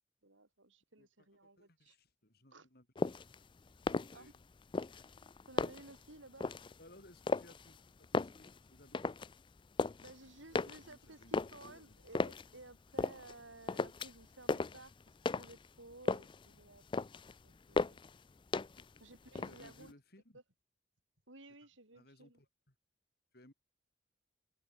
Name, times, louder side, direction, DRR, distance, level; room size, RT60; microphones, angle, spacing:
voice 1, 0.2-2.0 2.5-2.7 4.1-4.3 5.5-6.5 10.0-17.1 17.4-18.0 19.0-19.9 20.3-20.4 21.3-22.4, right 2 dB, 80° right, 6.2 m, -56 dB
voice 2, 1.0-3.3 3.8-4.4 6.8-9.0 9.3-9.4 10.5-12.0 18.8-18.9 19.4-20.4 21.9-22.7 23.3-23.5, left 1 dB, 55° left, 5.1 m, -62 dB
sound 1, 3.0-3.4 3.8-4.4 4.7-6.0 6.4-6.7 7.2-7.8 8.0-9.3 9.6-10.1 10.6-12.5 13.0-13.4 13.7-14.2 14.5-15.7 15.9-16.5 16.8-17.3 17.8-18.2 18.5-19.0 19.3-19.9, left 3 dB, 25° left, 0.4 m, -36 dB
head